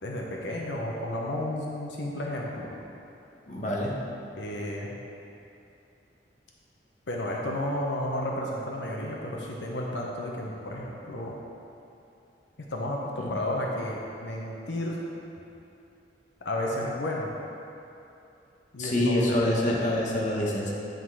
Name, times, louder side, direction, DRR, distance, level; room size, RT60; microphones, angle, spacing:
voice 1, 0.0-2.7 4.4-5.0 7.1-11.3 12.6-15.0 16.4-17.3 18.7-19.9, left 1 dB, 85° left, -2 dB, 0.9 m, -32 dB
voice 2, 3.5-4.0 18.8-20.7, left 1 dB, 45° left, -3 dB, 1.1 m, -26 dB
10.0 x 4.0 x 4.7 m, 2.7 s
head